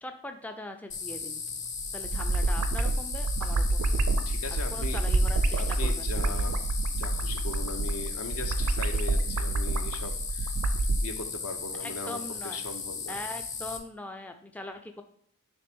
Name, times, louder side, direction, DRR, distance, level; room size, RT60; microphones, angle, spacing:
voice 1, 0.0-1.4 1.9-4.0 4.5-6.6 11.8-12.6 13.1-15.0, left 1 dB, 5° left, 5 dB, 0.3 m, -41 dB
sound 1, 0.9-13.8, left 5 dB, 35° left, 0.7 m, -37 dB
sound 2, 1.8-11.0, right 2 dB, 75° right, 0.5 m, -28 dB
voice 2, 4.3-5.0 5.6-6.6 7.0-10.5 11.0-13.2, left 3 dB, 70° left, 6 dB, 0.8 m, -39 dB
9.8 x 3.3 x 3.5 m, 0.68 s
head